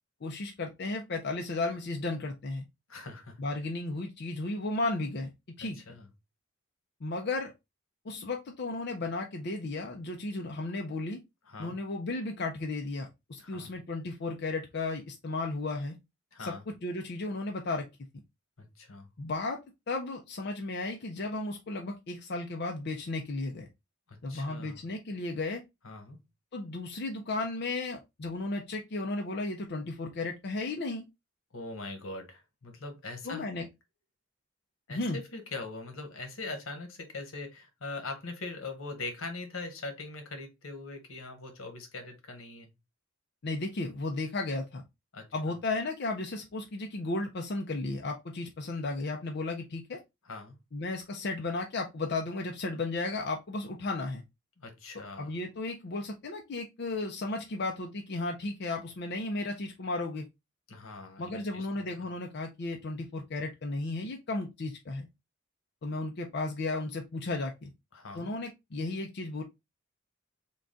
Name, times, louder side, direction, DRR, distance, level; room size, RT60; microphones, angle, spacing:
voice 1, 0.2-2.7 3.4-5.3 5.6-5.8 7.0-7.5 8.0-11.2 11.6-16.0 16.4-17.9 19.2-19.6 19.9-23.7 24.2-25.6 26.5-31.1 33.2-33.7 34.9-35.2 43.4-44.8 45.3-50.0 50.7-54.2 55.2-60.3 61.2-65.1 65.8-67.7 68.1-69.4, left 2 dB, 55° left, 0.5 m, -34 dB
voice 2, 2.9-3.4 5.7-6.1 11.5-11.7 13.4-13.7 16.3-16.6 18.6-19.1 24.1-24.8 25.8-26.2 31.5-33.5 34.9-42.7 45.1-45.6 50.3-50.6 54.6-55.3 60.7-62.1 67.9-68.3, left 3 dB, 85° left, 1.1 m, -42 dB
3.8 x 2.3 x 3.7 m
head